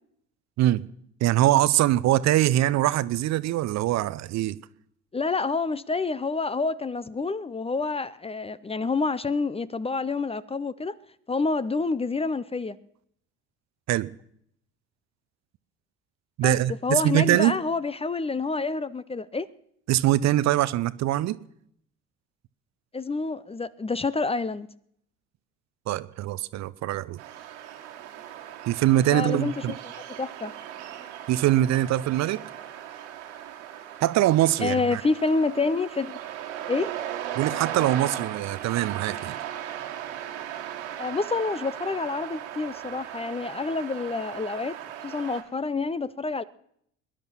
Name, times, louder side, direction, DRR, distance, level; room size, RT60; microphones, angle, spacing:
voice 1, 0.6-0.9 1.2-4.6 13.9-14.1 16.4-17.6 19.9-21.4 25.9-27.2 28.7-29.7 31.3-32.4 34.0-35.0 37.4-39.4, right 14 dB, 50° right, 0.7 m, -23 dB
voice 2, 5.1-11.0 11.3-12.8 16.4-16.6 16.8-19.5 22.9-24.7 29.1-29.5 30.2-30.6 34.6-36.2 36.7-36.9 41.0-44.8 45.0-46.4, left 3 dB, 15° left, 0.6 m, -28 dB
sound 1, 27.2-45.4, right 10 dB, 80° right, 1.8 m, -37 dB
20.0 x 10.5 x 6.2 m
hypercardioid pair, 55°, 35 cm